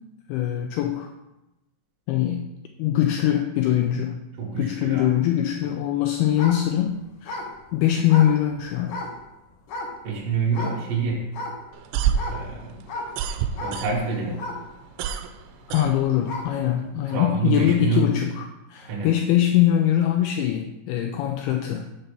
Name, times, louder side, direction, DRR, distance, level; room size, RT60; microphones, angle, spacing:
voice 1, 0.3-1.1 2.1-2.4 2.8-4.2 4.6-7.4 7.7-9.0 15.7-21.9, left 11 dB, 85° left, 4 dB, 2.2 m, -22 dB
voice 2, 4.4-5.1 10.0-11.2 12.3-12.8 13.6-14.4 17.1-18.1 18.9-19.1, right 5 dB, 65° right, -2 dB, 2.3 m, -27 dB
sound 1, 6.3-9.2 9.7-10.2 10.5-10.9 11.3-16.6 17.1-17.2, left 2 dB, 70° left, 2.0 m, -35 dB
sound 2, 11.7-14.3 14.6-16.5, right 8 dB, 85° right, 2.7 m, -27 dB
6.7 x 4.4 x 6.7 m, 0.95 s
omnidirectional pair, 4.9 m